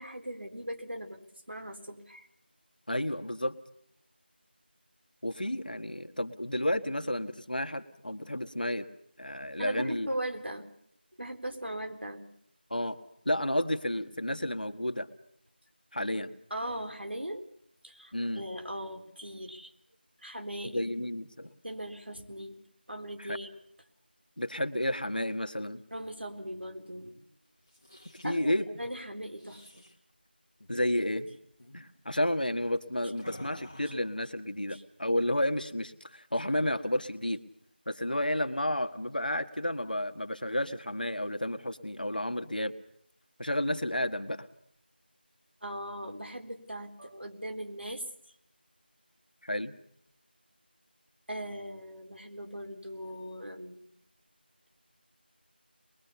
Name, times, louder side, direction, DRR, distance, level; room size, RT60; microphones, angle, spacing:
voice 1, 0.0-2.3 9.6-10.7 11.2-12.3 16.5-17.4 17.8-19.7 20.2-20.9 21.6-22.6 22.9-23.5 25.9-27.2 28.2-29.8 34.7-34.8 45.6-48.1 51.3-53.8, right 1 dB, 85° right, 4 dB, 4.0 m, -39 dB
voice 2, 2.9-3.6 5.2-8.9 9.2-10.1 12.7-13.0 13.2-15.1 15.9-16.3 18.1-18.4 20.7-21.5 23.2-23.4 24.4-25.8 28.2-28.7 30.7-31.2 31.7-37.4 37.8-42.7 43.4-44.5 49.4-49.7, left 1 dB, 55° left, 7 dB, 1.7 m, -31 dB
sound 1, 27.6-28.4 29.3-29.9 30.6-30.8 31.1-31.3 31.6-31.9 33.2-34.1, left 1 dB, 15° left, 2.0 m, -50 dB
24.5 x 22.0 x 7.0 m, 0.70 s
figure-of-eight pair, 180°, 6 cm